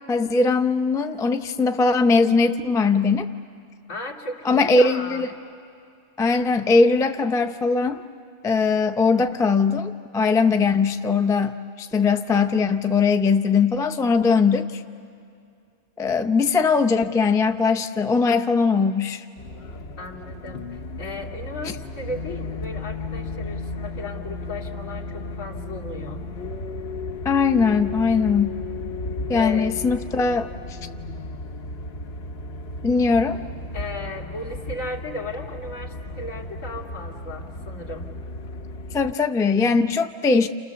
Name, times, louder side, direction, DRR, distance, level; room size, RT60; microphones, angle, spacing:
voice 1, 0.1-3.3 4.5-5.3 6.2-8.0 8.4-14.8 16.0-19.2 27.2-28.6 29.3-30.8 32.8-33.4 38.9-40.5, left 4 dB, 5° left, 8 dB, 0.3 m, -20 dB
voice 2, 3.9-5.2 20.0-26.2 29.3-29.7 33.7-38.1, left 2 dB, 85° left, -3 dB, 3.0 m, -35 dB
sound 1, 19.4-39.1, left 2 dB, 55° left, 1.1 m, -34 dB
29.5 x 29.0 x 7.0 m, 2.4 s
omnidirectional pair, 1.4 m